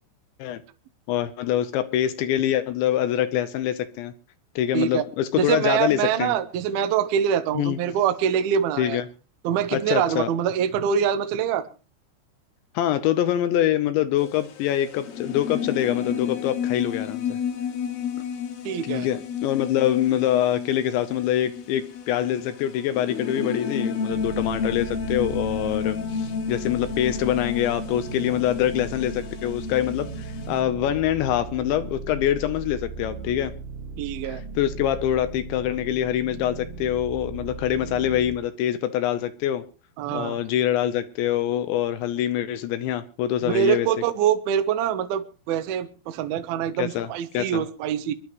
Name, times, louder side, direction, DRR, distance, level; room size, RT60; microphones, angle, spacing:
voice 1, 1.1-4.1 4.6-6.3 7.5-7.8 8.8-9.0 9.7-10.3 12.7-17.4 18.8-33.5 34.2-39.6 40.1-43.9 46.8-47.1 47.3-47.6, left 11 dB, 75° left, 3.0 m, -25 dB
voice 2, 4.7-5.0 5.4-9.0 9.4-11.7 18.6-19.1 34.0-34.4 40.0-40.4 43.4-48.1, right 9 dB, 70° right, 2.5 m, -24 dB
sound 1, 14.2-30.6, left 6 dB, 55° left, 3.3 m, -32 dB
sound 2, 24.1-38.4, right 4 dB, 55° right, 2.5 m, -37 dB
25.5 x 11.5 x 3.0 m
omnidirectional pair, 5.5 m